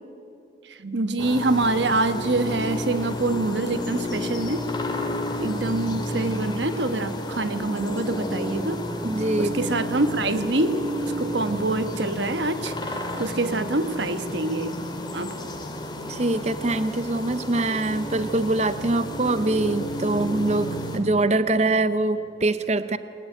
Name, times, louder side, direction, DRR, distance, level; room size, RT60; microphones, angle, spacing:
voice 1, 0.8-4.6 5.4-8.8 9.4-10.8 11.2-12.9 13.2-14.8 15.1-15.3, right 2 dB, 65° right, 11 dB, 1.2 m, -25 dB
sound 1, 1.2-21.0, left 1 dB, 20° left, 2.2 m, -31 dB
voice 2, 9.0-9.7 16.1-23.0, right 2 dB, 35° right, 13 dB, 0.6 m, -24 dB
21.5 x 20.0 x 9.9 m, 2.8 s
head